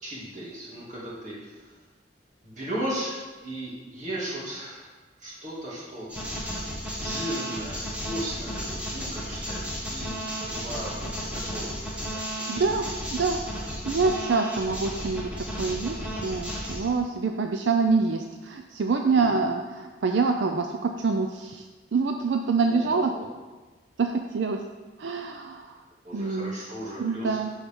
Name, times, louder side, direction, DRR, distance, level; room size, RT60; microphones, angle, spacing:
voice 1, 0.0-1.6 2.4-3.2 3.4-4.9 5.2-6.1 7.0-11.1 11.5-11.8 12.1-12.2 12.5-12.9 22.6-23.3 26.0-27.4, right 1 dB, 40° right, -6 dB, 2.4 m, -36 dB
sound 1, 6.1-16.9, equal, 10° right, 1.4 m, -33 dB
voice 2, 12.5-21.7 21.9-23.1 24.0-24.6 25.0-25.8 26.1-26.6 27.0-27.5, right 4 dB, 75° right, 5 dB, 0.4 m, -26 dB
12.0 x 4.7 x 3.7 m, 1.3 s
head